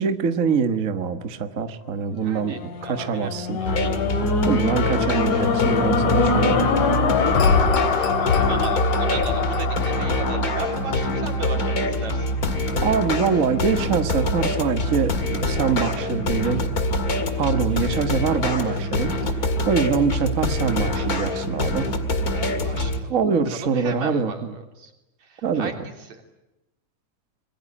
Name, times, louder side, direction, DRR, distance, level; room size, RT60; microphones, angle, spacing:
voice 1, 0.0-3.6 4.4-6.7 12.8-16.7 17.4-21.9 23.1-24.5 25.4-25.7, right 6 dB, 40° right, 9 dB, 1.1 m, -24 dB
voice 2, 2.2-3.3 3.6-3.8 7.8-12.3 22.3-23.2 23.5-24.9 25.2-26.2, right 3 dB, 65° right, 4 dB, 4.6 m, -36 dB
sound 1, 2.3-12.6 13.2-13.3, left 5 dB, 80° left, 3.8 m, -24 dB
sound 2, 3.6-23.0, left 1 dB, 35° left, 2.2 m, -25 dB
26.0 x 22.5 x 10.0 m, 0.92 s
omnidirectional pair, 3.4 m